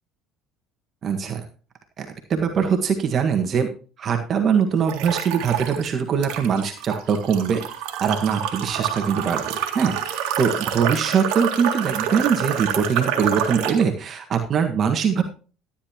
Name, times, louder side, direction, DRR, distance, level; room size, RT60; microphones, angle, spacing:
voice 1, 1.0-1.4 2.0-3.7 4.0-7.6 8.0-15.2, right 6 dB, 45° right, 5 dB, 1.6 m, -22 dB
sound 1, 4.9-5.9 6.2-13.8, right 9 dB, 70° right, 1.9 m, -27 dB
13.0 x 10.0 x 3.0 m, 0.36 s
hypercardioid pair, 75°, 0 cm